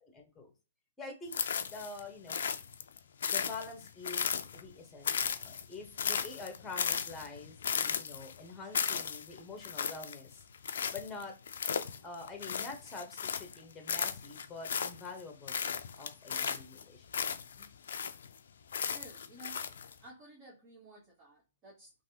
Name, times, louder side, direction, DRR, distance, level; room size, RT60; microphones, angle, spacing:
voice 1, 0.0-0.5 1.0-1.4 1.6-2.4 3.2-10.4 10.9-11.4 12.0-17.1 17.6-17.7, left 3 dB, 10° left, 4 dB, 1.0 m, -46 dB
sound 1, 1.3-2.0 2.3-4.7 5.0-13.6 13.9-15.2 15.5-18.3 18.7-19.9, left 7 dB, 70° left, 0.4 m, -35 dB
voice 2, 18.9-19.6 20.0-21.9, right 1 dB, 30° right, -3 dB, 1.0 m, -54 dB
3.2 x 2.6 x 2.8 m, 0.33 s
hypercardioid pair, 135°, 0 cm